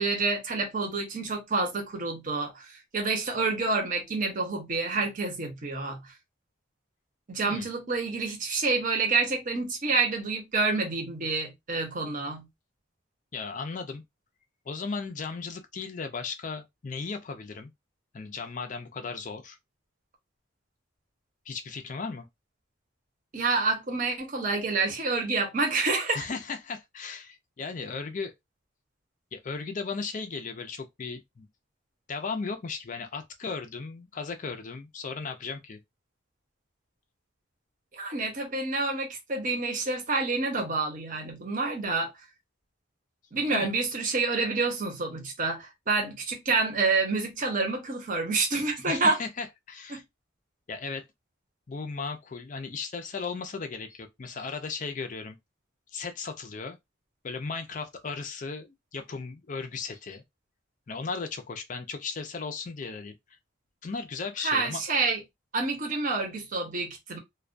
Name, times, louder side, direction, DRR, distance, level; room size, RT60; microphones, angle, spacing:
voice 1, 0.0-6.1 7.3-12.5 23.3-26.2 37.9-42.1 43.3-49.2 49.9-50.0 64.4-65.2 65.5-67.2, right 3 dB, 40° right, 0.7 m, -28 dB
voice 2, 13.3-14.0 14.7-17.7 18.1-19.6 21.5-22.3 26.1-28.3 29.3-31.5 32.1-35.8 43.5-43.7 48.9-50.0 50.7-51.0 51.7-55.4 55.9-56.8 57.2-60.2 60.9-63.1 63.8-64.8, left 4 dB, 40° left, 0.4 m, -36 dB
2.2 x 2.2 x 2.4 m
head